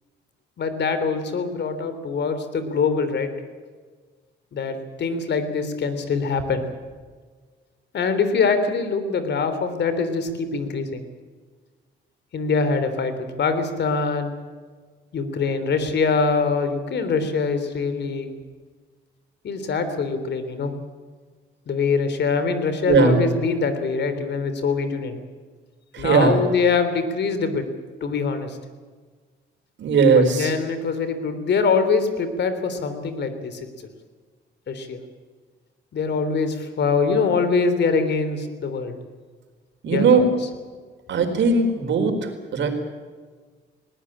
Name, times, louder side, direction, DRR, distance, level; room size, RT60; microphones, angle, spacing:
voice 1, 0.6-3.3 4.5-6.6 7.9-11.0 12.3-14.3 15.1-18.3 19.4-20.7 21.7-25.2 26.0-27.6 28.0-28.6 30.1-33.6 34.7-35.0 35.9-38.9 39.9-40.2, left 4 dB, 60° left, 10 dB, 3.5 m, -23 dB
voice 2, 22.9-23.2 25.9-26.3 29.8-30.5 39.8-40.3 41.1-42.7, right 5 dB, 65° right, 6 dB, 4.5 m, -18 dB
20.5 x 18.0 x 8.8 m, 1.5 s
cardioid pair, 90°, 20 cm